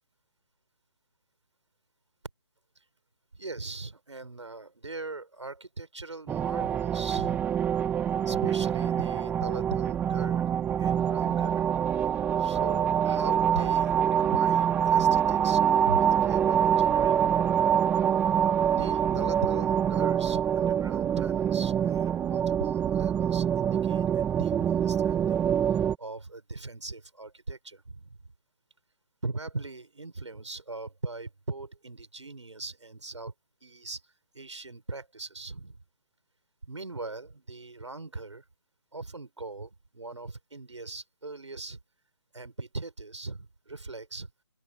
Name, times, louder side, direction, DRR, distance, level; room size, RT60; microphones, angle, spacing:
voice 1, 3.3-7.4 8.3-11.6 12.4-17.5 18.7-25.5 26.0-28.2 29.2-33.3 33.6-34.0 34.3-35.8 36.6-38.4 38.9-41.8 42.3-44.3, right 3 dB, 90° right, 6.2 m, -40 dB
sound 1, 6.3-26.0, right 9 dB, 10° right, 1.2 m, -25 dB
open air
figure-of-eight pair, 150°, 15 cm